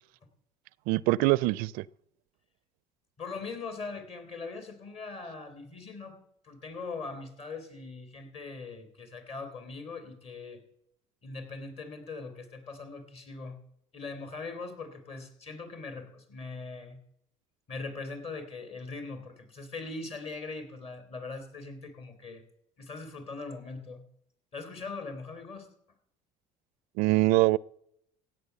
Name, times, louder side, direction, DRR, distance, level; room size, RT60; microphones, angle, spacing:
voice 1, 0.9-1.8 27.0-27.6, right 20 dB, 75° right, 0.4 m, -23 dB
voice 2, 3.2-10.6 11.2-13.6 13.9-17.0 17.7-22.4 22.8-24.0 24.5-25.7, left 3 dB, 40° left, 3.3 m, -41 dB
16.0 x 8.5 x 6.9 m
cardioid pair, 115°, 15 cm